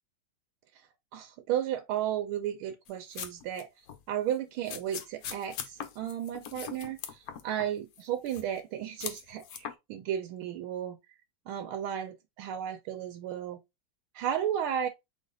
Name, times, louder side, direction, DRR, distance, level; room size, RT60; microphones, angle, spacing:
voice 1, 1.1-3.7 4.1-11.0 11.5-13.6 14.1-14.9, right 10 dB, 85° right, 1.5 m, -34 dB
sound 1, 2.9-3.6 3.9-4.0 4.7-7.7 7.9-8.6 9.0-9.7, left 8 dB, 75° left, 0.8 m, -40 dB
3.9 x 3.2 x 3.7 m
omnidirectional pair, 2.3 m